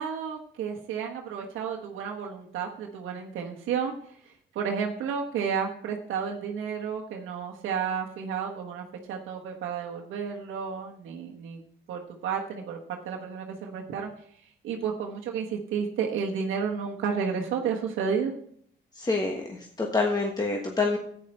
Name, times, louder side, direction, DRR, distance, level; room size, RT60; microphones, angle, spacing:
voice 1, 0.0-3.9 4.3-11.6 11.9-14.1 14.6-18.3, right 6 dB, 85° right, 0 dB, 1.2 m, -32 dB
voice 2, 19.0-19.5 19.8-21.0, left 3 dB, 20° left, 1 dB, 1.4 m, -26 dB
11.0 x 9.1 x 4.3 m, 0.64 s
cardioid pair, 90°, 20 cm